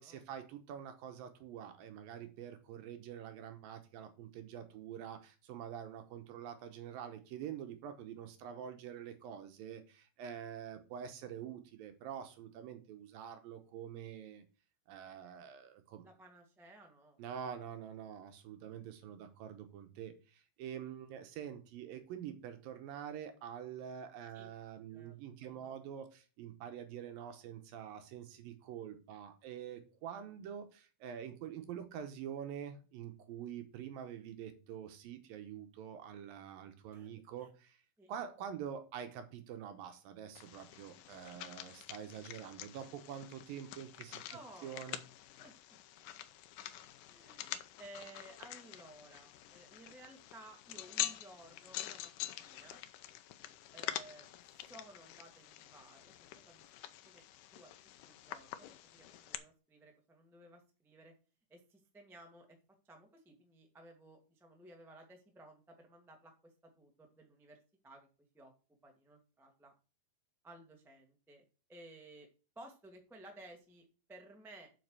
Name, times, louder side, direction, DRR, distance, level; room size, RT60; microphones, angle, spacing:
voice 1, 0.0-14.4 14.9-16.0 17.2-37.8 38.1-44.2 44.6-45.0, right 9 dB, 75° right, 8 dB, 2.5 m, -46 dB
voice 2, 16.0-17.2 24.3-24.5 24.9-25.8 36.9-37.1 37.4-37.5 38.0-38.1 44.3-44.8 45.4-45.5 47.1-52.1 52.4-52.8 53.7-56.6 57.0-57.2 57.5-57.7 58.0-61.1 61.5-62.6 62.8-67.6 67.8-68.1 68.3-68.5 68.8-69.7 70.4-71.4 71.7-72.3 72.5-74.7, right 1 dB, ahead, 3 dB, 0.5 m, -57 dB
sound 1, 40.4-59.4, left 13 dB, 80° left, 1.9 m, -46 dB
7.7 x 6.0 x 6.6 m, 0.35 s
omnidirectional pair, 4.5 m